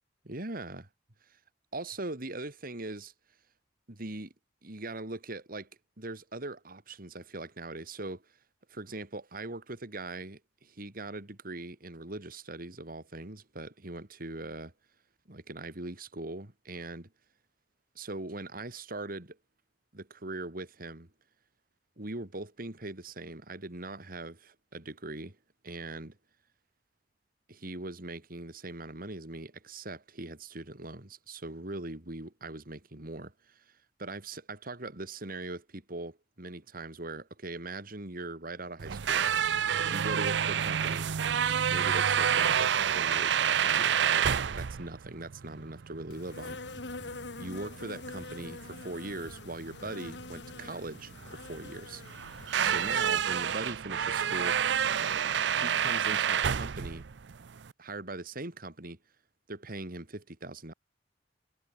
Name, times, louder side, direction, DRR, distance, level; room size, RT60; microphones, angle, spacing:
voice 1, 0.2-0.9 1.7-3.1 3.9-4.3 4.6-5.7 6.0-8.2 8.7-14.7 15.3-17.1 17.9-19.4 19.9-21.1 22.0-25.4 25.6-26.2 27.5-39.2 39.9-41.1 41.7-44.3 44.6-46.8 47.4-52.0 52.6-54.6 55.6-57.0 57.8-59.0 59.5-60.7, right 2 dB, 55° right, 2.7 m, -41 dB
sound 1, 38.8-57.7, right 8 dB, 75° right, 0.5 m, -29 dB
Insect, 46.1-53.3, left 3 dB, 70° left, 1.9 m, -44 dB
head